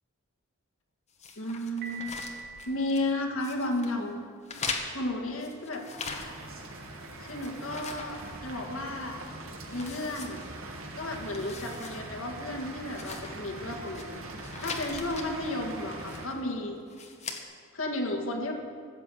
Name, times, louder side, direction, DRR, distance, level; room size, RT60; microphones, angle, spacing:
sound 1, 1.2-3.1 3.4-3.9 4.4-6.6 6.9-8.9 9.2-9.3 9.7-10.9 11.2-12.0 12.3-12.4 12.9-14.0 14.4-15.3 16.0-16.4 16.9-17.4, left 4 dB, 35° left, 1.2 m, -40 dB
voice 1, 1.4-2.2 2.7-4.2 4.9-5.9 7.2-9.2 9.7-10.4 10.9-14.2 14.6-16.8 17.7-18.5, left 1 dB, 70° left, 2 dB, 1.8 m, -33 dB
Piano, 1.8-3.8, right 3 dB, 50° right, 2.3 m, -44 dB
sound 2, 6.1-16.3, right 2 dB, 75° right, 1.8 m, -42 dB
14.0 x 8.0 x 7.6 m, 2.1 s
head